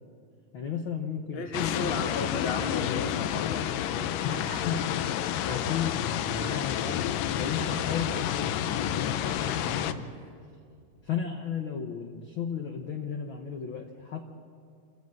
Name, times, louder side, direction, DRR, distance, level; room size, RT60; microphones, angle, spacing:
voice 1, 0.5-2.4 4.2-10.1 11.0-14.2, left 6 dB, 60° left, 3 dB, 1.3 m, -35 dB
voice 2, 1.3-4.2, left 3 dB, 30° left, 3 dB, 1.2 m, -34 dB
sound 1, 1.5-9.9, left 11 dB, 80° left, 2.4 m, -30 dB
Gasp, 4.3-4.7 5.2-5.9 6.3-8.8 9.3-10.3 11.0-11.1, right 4 dB, 50° right, 3.5 m, -49 dB
27.5 x 15.5 x 7.7 m, 2.3 s
omnidirectional pair, 3.9 m